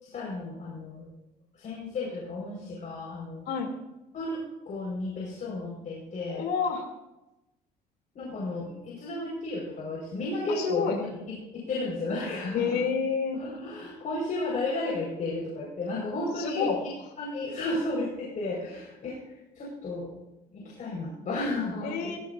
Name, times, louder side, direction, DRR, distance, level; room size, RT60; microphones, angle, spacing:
voice 1, 0.0-1.1 1.6-3.5 4.1-6.4 8.1-12.8 13.3-16.8 17.2-19.2 19.5-20.1 20.5-22.1, left 2 dB, 50° left, -4 dB, 5.1 m, -33 dB
voice 2, 6.3-6.9 10.5-11.0 12.5-13.4 16.4-16.8 21.8-22.2, left 6 dB, 75° left, 3 dB, 3.0 m, -29 dB
17.5 x 16.0 x 2.7 m, 0.95 s
cardioid pair, 110°, 17 cm